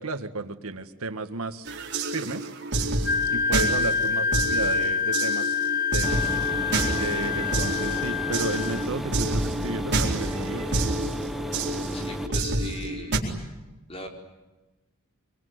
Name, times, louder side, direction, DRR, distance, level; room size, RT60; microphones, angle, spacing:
voice 1, 0.0-1.7 2.1-2.5 3.3-5.6 5.9-6.6 6.9-10.9, right 2 dB, 85° right, 8 dB, 1.7 m, -33 dB
sound 1, 1.7-13.2, right 2 dB, 55° right, 4.4 m, -29 dB
Wind instrument woodwind instrument, 3.0-8.9, left 6 dB, 60° left, 1.8 m, -27 dB
sound 2, 6.0-12.3, equal, ahead, 1.5 m, -33 dB
voice 2, 11.9-13.3 13.9-14.1, left 1 dB, 30° left, 2 dB, 4.8 m, -39 dB
24.5 x 24.5 x 9.6 m, 1.1 s
head